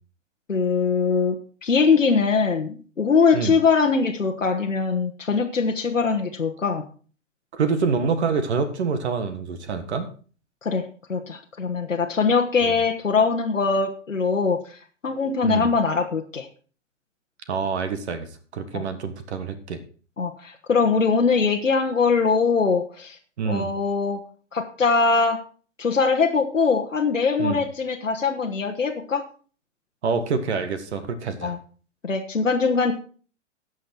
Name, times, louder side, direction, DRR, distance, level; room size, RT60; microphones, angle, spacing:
voice 1, 0.5-6.8 10.6-10.8 11.1-16.5 18.7-18.8 20.2-23.2 23.4-24.2 24.5-25.4 25.8-29.2 31.4-31.6 32.0-32.9, left 5 dB, 90° left, 3 dB, 1.2 m, -22 dB
voice 2, 7.5-10.1 12.6-12.7 15.4-15.7 17.5-18.3 18.5-19.8 23.4-23.7 27.4-27.6 30.0-31.5, right 5 dB, 60° right, 11 dB, 1.6 m, -26 dB
16.5 x 6.4 x 4.4 m, 0.40 s
figure-of-eight pair, 110°, 37 cm